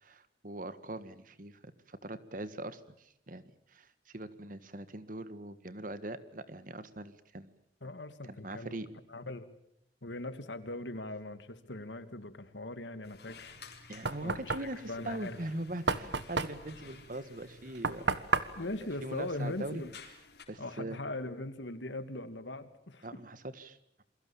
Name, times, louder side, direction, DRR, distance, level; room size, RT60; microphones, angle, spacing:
voice 1, 0.0-7.5 8.3-8.9 13.9-18.0 18.6-18.7 19.0-19.8 20.5-21.0 23.0-24.0, right 1 dB, 45° right, 13 dB, 1.6 m, -42 dB
voice 2, 7.8-8.8 9.1-9.5 10.0-13.5 14.2-14.6 14.9-15.4 18.6-19.9 20.6-23.1, left 2 dB, 80° left, 11 dB, 2.2 m, -40 dB
sound 1, 13.0-20.5, left 5 dB, 60° left, 4.2 m, -54 dB
Knock, 13.5-20.0, right 4 dB, 75° right, 1.5 m, -35 dB
28.5 x 23.0 x 7.2 m, 0.75 s
head